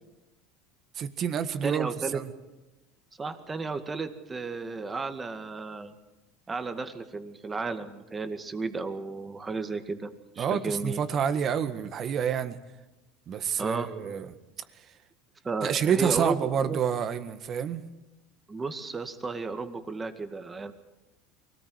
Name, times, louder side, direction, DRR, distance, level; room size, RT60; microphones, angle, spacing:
voice 1, 0.9-2.3 10.4-12.6 13.3-14.3 15.6-17.8, right 8 dB, 40° right, 10 dB, 1.7 m, -28 dB
voice 2, 1.6-2.2 3.2-5.9 6.5-11.0 13.6-13.9 15.4-16.8 18.5-20.7, right 4 dB, 20° right, 8 dB, 2.0 m, -33 dB
24.0 x 18.0 x 8.0 m, 1.0 s
supercardioid pair, 125°, 0 cm